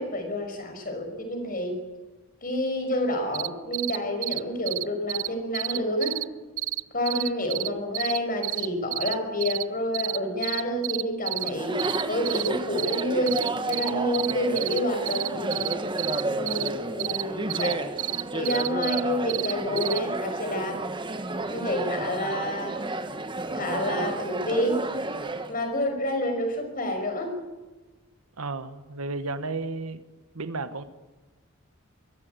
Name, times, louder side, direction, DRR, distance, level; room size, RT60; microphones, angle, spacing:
voice 1, 0.0-1.8 2.4-6.2 6.9-11.8 12.1-13.4 13.7-15.8 16.2-17.9 18.3-20.8 21.5-22.8 23.5-24.8 25.5-27.4, left 1 dB, 40° left, 5 dB, 5.5 m, -28 dB
sound 1, 3.3-3.5 3.7-4.0 4.2-4.4 4.7-4.8 5.1-5.3 5.5-6.2 6.6-6.8 7.1-7.7 7.9-9.1 9.4-9.6 9.9-10.2 10.4-11.5 11.8-12.5 12.8-13.0 13.3-14.8 15.1-16.7 17.0-17.2 17.5-17.7 18.0-19.0 19.3-20.0, right 17 dB, 70° right, 0.6 m, -29 dB
Chatter, 11.4-25.5, right 2 dB, 20° right, 1.3 m, -32 dB
voice 2, 28.4-30.0 30.3-30.8, right 3 dB, 90° right, 11 dB, 1.2 m, -33 dB
23.5 x 14.5 x 9.3 m, 1.2 s
head